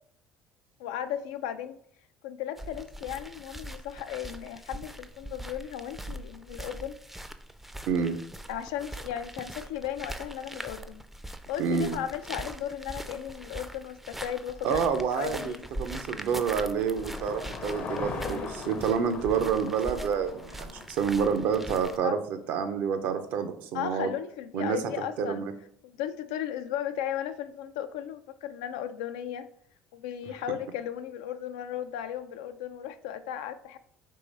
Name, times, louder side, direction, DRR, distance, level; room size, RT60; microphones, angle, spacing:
voice 1, 0.8-1.8 2.2-7.0 8.5-11.0 11.5-14.8 15.1-15.6 22.0-22.2 23.7-25.4 25.8-29.5 29.9-33.8, left 10 dB, 90° left, 10 dB, 0.3 m, -35 dB
sound 1, 2.6-22.0, right 1 dB, 5° right, 0.4 m, -42 dB
voice 2, 7.9-8.2 11.6-12.0 14.6-24.1 24.5-25.5 30.5-30.6, right 6 dB, 75° right, 8 dB, 0.6 m, -28 dB
Car passing by / Engine, 15.4-21.9, left 5 dB, 50° left, 0.7 m, -41 dB
3.8 x 2.9 x 4.0 m, 0.65 s
supercardioid pair, 80°, 3 cm